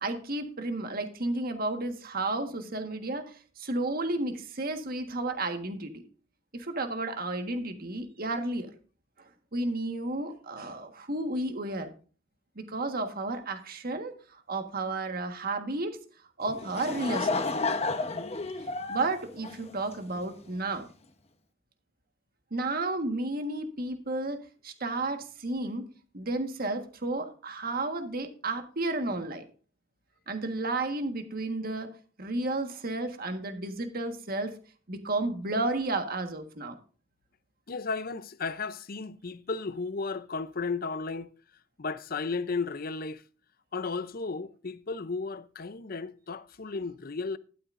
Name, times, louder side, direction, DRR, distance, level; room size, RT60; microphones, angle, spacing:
voice 1, 0.0-6.0 6.5-8.7 9.5-11.9 12.5-14.2 14.5-16.0 16.4-17.4 18.9-20.9 22.5-24.4 24.6-25.9 26.1-29.4 30.3-34.5 34.9-36.7, right 2 dB, 50° right, 1.5 m, -32 dB
Laughter / Crowd, 16.4-20.2, left 3 dB, 35° left, 1.0 m, -31 dB
voice 2, 37.7-41.3 41.8-43.2 43.7-47.4, left 4 dB, 50° left, 0.7 m, -34 dB
12.5 x 12.0 x 2.6 m
head